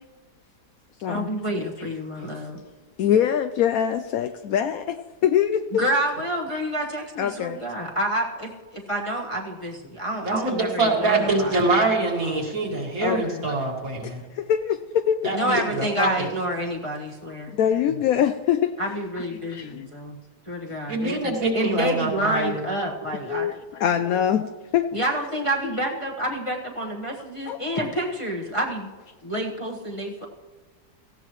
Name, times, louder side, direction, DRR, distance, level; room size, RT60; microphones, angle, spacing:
voice 1, 1.1-2.6 5.7-11.5 15.3-17.5 18.8-20.2 20.5-23.5 24.9-28.9 29.2-30.3, equal, 20° left, -1 dB, 1.0 m, -28 dB
voice 2, 3.0-5.8 7.2-7.6 13.0-13.5 14.3-15.3 17.5-18.7 19.5-19.9 23.3-24.9 25.6-25.8 27.5-27.6, left 9 dB, 70° left, 9 dB, 0.9 m, -23 dB
voice 3, 10.2-14.2 15.2-16.3 17.9-18.0 20.9-22.7, right 2 dB, 55° right, -1 dB, 2.4 m, -24 dB
17.5 x 15.5 x 3.1 m, 1.3 s
omnidirectional pair, 1.8 m